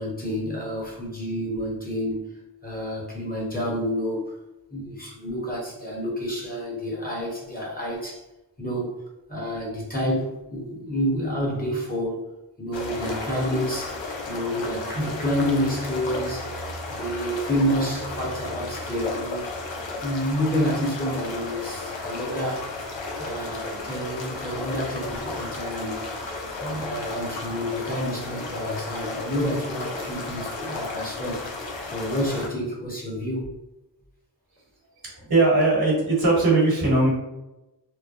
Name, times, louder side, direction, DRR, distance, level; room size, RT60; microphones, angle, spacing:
voice 1, 0.0-2.2 2.6-4.4 4.7-8.2 8.6-8.9 9.3-12.3 12.6-16.6 16.9-19.5 20.0-22.7 23.2-31.4 31.9-33.5, equal, 20° left, -4 dB, 1.0 m, -29 dB
sound 1, 12.7-32.5, left 2 dB, 85° left, 0.6 m, -33 dB
voice 2, 35.2-37.1, right 2 dB, 55° right, -3 dB, 1.2 m, -19 dB
3.1 x 2.1 x 2.5 m, 0.99 s
wide cardioid pair, 55°, 44 cm